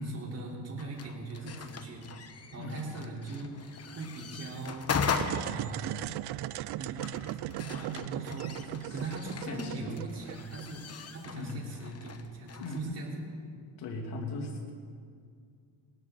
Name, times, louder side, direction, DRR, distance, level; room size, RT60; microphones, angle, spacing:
voice 1, 0.0-5.0 5.3-6.0 6.8-7.0 7.6-8.5 8.9-13.2, right 2 dB, 35° right, -3 dB, 4.0 m, -41 dB
sound 1, 0.8-12.8, left 5 dB, 35° left, 1.0 m, -39 dB
sound 2, 5.1-10.9, right 14 dB, 65° right, 0.5 m, -38 dB
voice 2, 8.4-8.9 9.4-10.0 11.3-11.6 12.6-12.9 13.8-14.7, left 2 dB, 65° left, -1 dB, 2.8 m, -38 dB
19.5 x 13.5 x 4.0 m, 2.2 s
cardioid pair, 105°, 42 cm